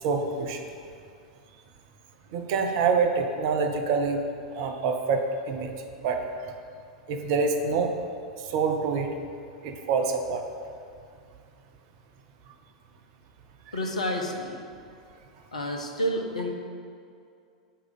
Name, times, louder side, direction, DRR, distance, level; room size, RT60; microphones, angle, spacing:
voice 1, 0.0-0.6 2.3-4.2 4.6-5.7 6.0-6.2 7.1-7.9 8.5-9.1 9.6-10.4, right 5 dB, 45° right, 4 dB, 0.7 m, -26 dB
voice 2, 13.7-14.6 15.5-16.5, equal, 75° left, 3 dB, 0.9 m, -29 dB
5.6 x 4.8 x 6.5 m, 2.3 s
figure-of-eight pair, 90°, 4 cm